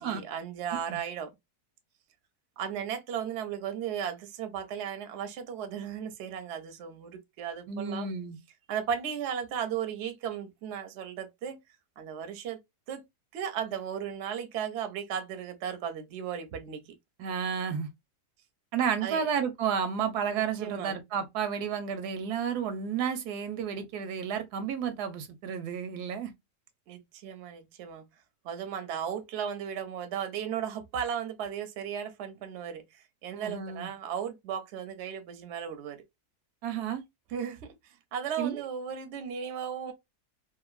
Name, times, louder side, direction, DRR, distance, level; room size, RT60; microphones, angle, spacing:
voice 1, 0.0-1.3 2.6-8.1 8.7-11.6 12.0-12.6 12.9-13.0 13.3-16.9 19.0-19.3 20.3-21.0 26.9-28.1 28.4-36.0 37.3-39.9, right 8 dB, 65° right, 0.7 m, -36 dB
voice 2, 7.7-8.4 17.2-17.9 18.7-26.3 33.3-33.9 36.6-37.0 38.4-38.6, right 7 dB, 85° right, 1.2 m, -31 dB
2.9 x 2.5 x 2.3 m
omnidirectional pair, 1.7 m